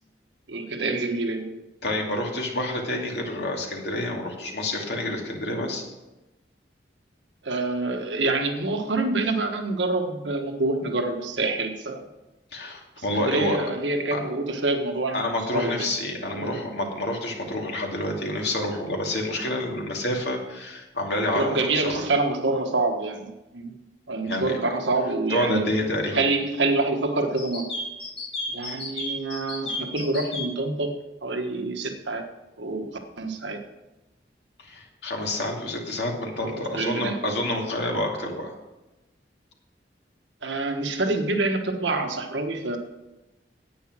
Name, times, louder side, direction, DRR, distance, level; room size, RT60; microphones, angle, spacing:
voice 1, 0.5-1.6 7.4-12.0 13.2-15.2 15.5-15.9 16.3-16.5 21.3-23.8 24.1-25.6 26.1-27.7 28.5-30.9 31.2-32.2 32.6-32.9 33.2-33.6 36.4-37.2 40.4-42.8, right 2 dB, 85° right, 4 dB, 1.3 m, -26 dB
voice 2, 1.8-5.8 12.5-13.6 14.1-14.2 15.1-22.0 24.3-24.6 25.3-26.2 34.6-38.5, left 1 dB, 70° left, 0 dB, 2.4 m, -28 dB
sound 1, 27.4-30.5, left 2 dB, 35° left, 3.1 m, -32 dB
10.5 x 8.8 x 6.1 m, 1.0 s
head